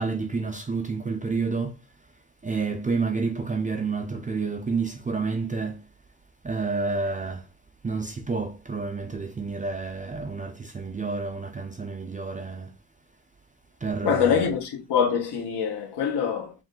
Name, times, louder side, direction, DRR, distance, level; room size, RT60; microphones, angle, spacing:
voice 1, 0.0-1.8 2.4-5.8 6.4-7.5 7.8-12.7 13.8-14.5, right 4 dB, 15° right, 0.5 m, -29 dB
voice 2, 14.0-16.5, left 7 dB, 60° left, 1.2 m, -24 dB
4.8 x 2.6 x 3.7 m
cardioid pair, 120°, 46 cm